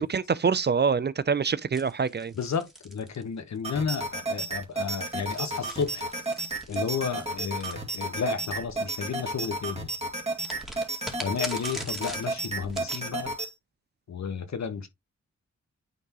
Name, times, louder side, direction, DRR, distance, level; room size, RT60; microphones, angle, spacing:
voice 1, 0.0-2.3, right 5 dB, 35° right, 0.5 m, -25 dB
sound 1, 1.7-3.7 4.7-8.5 10.4-13.1, equal, ahead, 2.1 m, -42 dB
voice 2, 2.3-6.1 6.7-9.9 11.2-13.3 14.1-14.9, left 6 dB, 70° left, 1.3 m, -32 dB
sound 2, 3.6-13.5, right 2 dB, 20° right, 2.2 m, -33 dB
9.6 x 3.5 x 3.0 m
cardioid pair, 60°, 29 cm